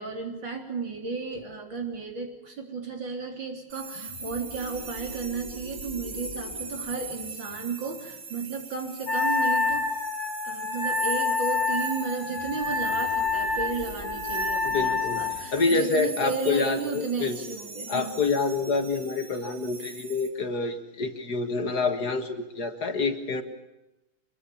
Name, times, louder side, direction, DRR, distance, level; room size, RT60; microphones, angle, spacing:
voice 1, 0.0-9.9 10.4-18.2, right 4 dB, 60° right, 3 dB, 4.4 m, -34 dB
sound 1, 3.7-20.3, right 3 dB, 85° right, 4.1 m, -40 dB
sound 2, 3.9-9.2 12.3-17.5, right 1 dB, 15° right, 3.4 m, -45 dB
Wind instrument woodwind instrument, 9.1-15.4, left 4 dB, 80° left, 2.7 m, -27 dB
voice 2, 14.6-17.6 17.9-23.4, left 4 dB, 50° left, 7 dB, 2.0 m, -27 dB
24.5 x 22.0 x 7.1 m, 0.98 s
omnidirectional pair, 2.3 m